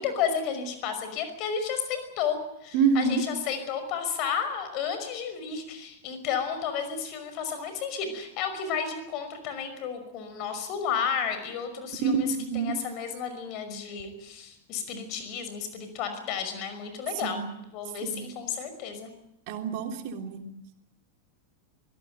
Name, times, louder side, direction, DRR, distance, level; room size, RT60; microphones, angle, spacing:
voice 1, 0.0-2.4 2.6-12.3 12.5-17.4 17.7-19.1, left 7 dB, 40° left, 9 dB, 5.6 m, -32 dB
voice 2, 2.7-3.2 12.0-12.7 17.2-17.4 18.0-18.2 19.5-20.4, right 5 dB, 45° right, 5 dB, 3.3 m, -26 dB
24.0 x 17.5 x 9.2 m, 0.83 s
figure-of-eight pair, 90°, 0 cm